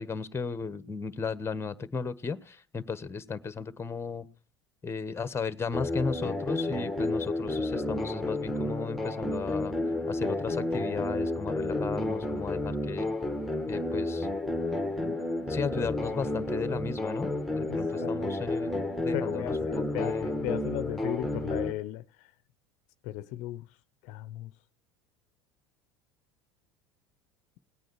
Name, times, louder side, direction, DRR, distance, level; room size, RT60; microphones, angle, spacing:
voice 1, 0.0-4.3 4.8-9.7 10.1-13.1 13.7-14.3 15.0-20.3, left 5 dB, 20° left, 1.2 m, -35 dB
sound 1, 5.7-21.7, left 1 dB, ahead, 1.8 m, -31 dB
voice 2, 17.7-18.2 19.1-22.3 23.0-23.7 24.0-24.5, left 15 dB, 60° left, 0.7 m, -36 dB
18.0 x 9.1 x 4.7 m
hypercardioid pair, 80°, 13 cm